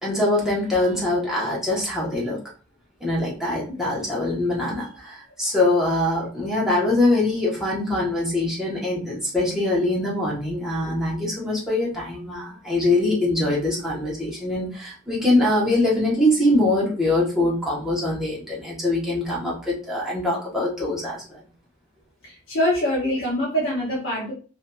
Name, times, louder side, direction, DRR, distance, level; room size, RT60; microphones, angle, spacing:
voice 1, 0.0-2.4 3.0-21.4, left 1 dB, ahead, -6 dB, 0.9 m, -23 dB
voice 2, 22.2-24.3, equal, 65° left, -6 dB, 0.9 m, -24 dB
2.7 x 2.5 x 2.2 m, 0.37 s
head